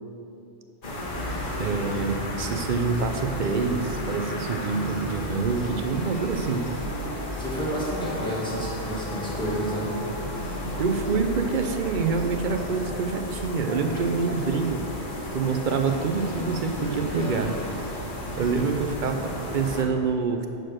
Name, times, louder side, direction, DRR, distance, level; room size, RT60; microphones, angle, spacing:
sound 1, 0.8-19.8, left 1 dB, 50° left, 1.2 m, -33 dB
voice 1, 1.6-6.6 10.8-14.8 15.3-17.6 18.4-20.5, right 4 dB, 55° right, 6 dB, 0.6 m, -26 dB
voice 2, 7.4-10.0, right 1 dB, 5° left, -7 dB, 1.7 m, -30 dB
7.8 x 4.3 x 6.3 m, 2.6 s
omnidirectional pair, 1.1 m